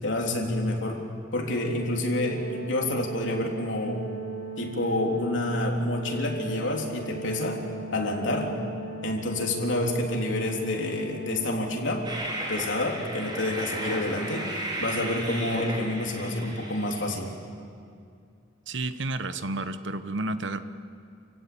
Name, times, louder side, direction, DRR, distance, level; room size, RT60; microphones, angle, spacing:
voice 1, 0.0-1.0 1.3-4.1 4.6-7.6 7.9-8.6 9.0-12.1 12.5-14.5 14.8-17.3, left 1 dB, 75° left, 0 dB, 3.5 m, -28 dB
Organ, 1.5-12.3, right 3 dB, 45° right, 7.2 m, -38 dB
Train, 12.0-17.1, right 1 dB, 25° right, 4.5 m, -34 dB
voice 2, 18.7-20.6, right 2 dB, 70° right, 11 dB, 1.1 m, -31 dB
29.0 x 16.5 x 8.6 m, 2.3 s
head